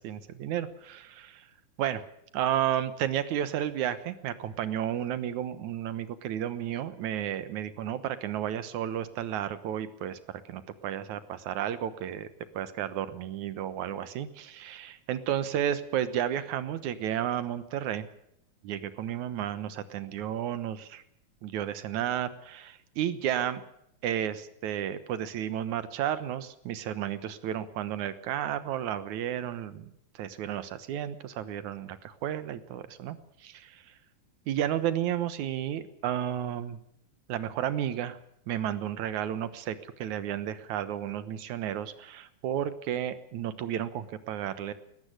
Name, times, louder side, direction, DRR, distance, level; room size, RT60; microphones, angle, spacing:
voice 1, 0.0-1.5 1.8-2.0 2.3-10.2 10.5-12.3 12.5-18.1 18.6-21.0 21.4-23.6 24.0-33.8 34.5-36.8 37.3-38.2 38.5-44.7, right 10 dB, 70° right, 13 dB, 2.5 m, -32 dB
18.5 x 14.5 x 9.9 m, 0.74 s
omnidirectional pair, 3.6 m